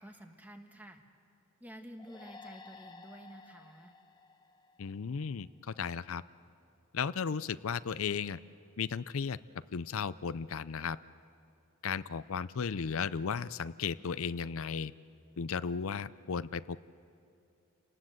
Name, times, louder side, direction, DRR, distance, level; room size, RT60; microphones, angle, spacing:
voice 1, 0.0-1.0 1.6-3.9, equal, 10° right, 5 dB, 1.4 m, -50 dB
sound 1, 2.0-5.5, left 3 dB, 20° left, 0.9 m, -54 dB
voice 2, 4.8-6.2 6.9-8.4 8.8-9.4 9.7-11.0 11.8-14.9 15.4-16.9, left 6 dB, 80° left, 15 dB, 0.5 m, -35 dB
29.5 x 19.0 x 7.8 m, 2.6 s
head